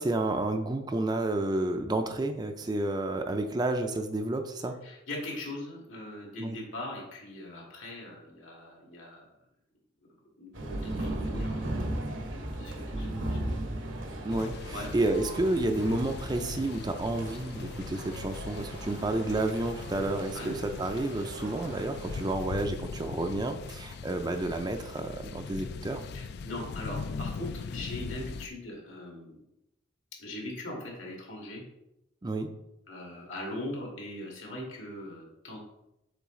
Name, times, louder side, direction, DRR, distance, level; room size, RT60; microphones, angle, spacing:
voice 1, 0.0-4.8 6.4-6.6 14.2-26.0 32.2-32.5, right 2 dB, 20° right, 6 dB, 0.4 m, -30 dB
voice 2, 4.8-9.3 10.4-12.1 12.4-13.6 14.7-14.9 20.3-20.6 26.1-29.4 30.2-31.6 32.9-35.6, left 1 dB, 75° left, -1 dB, 2.0 m, -40 dB
sound 1, 10.5-22.3, right 1 dB, 65° right, 0.9 m, -37 dB
sound 2, 14.3-28.5, left 5 dB, 55° left, 0.3 m, -40 dB
7.0 x 4.0 x 3.7 m, 0.88 s
head